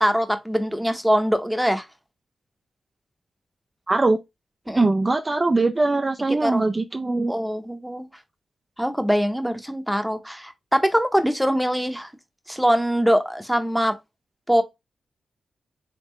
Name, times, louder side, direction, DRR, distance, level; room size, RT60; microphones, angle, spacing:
voice 1, 0.0-1.8 4.7-4.9 6.4-6.6 7.3-8.1 8.8-12.1 12.5-13.9 14.5-14.6, equal, ahead, 0.7 m, -22 dB
voice 2, 3.9-4.2 4.8-7.3, right 2 dB, 25° right, 0.3 m, -21 dB
3.6 x 3.5 x 3.0 m
wide cardioid pair, 105°, 0 cm